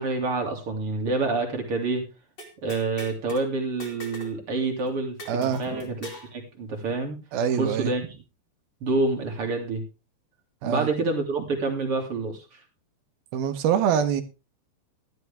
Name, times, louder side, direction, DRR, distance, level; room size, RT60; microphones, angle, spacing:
voice 1, 0.0-2.0 2.6-7.2 7.6-8.0 8.8-9.8 10.6-12.6, right 3 dB, 40° right, 2.6 m, -27 dB
sound 1, 2.4-3.4 3.8-4.4 4.6-4.7 5.2-6.3, equal, 30° left, 2.8 m, -42 dB
voice 2, 5.3-5.9 7.3-7.9 10.6-10.9 13.3-14.2, right 8 dB, 70° right, 2.5 m, -25 dB
13.0 x 12.5 x 3.5 m
omnidirectional pair, 5.3 m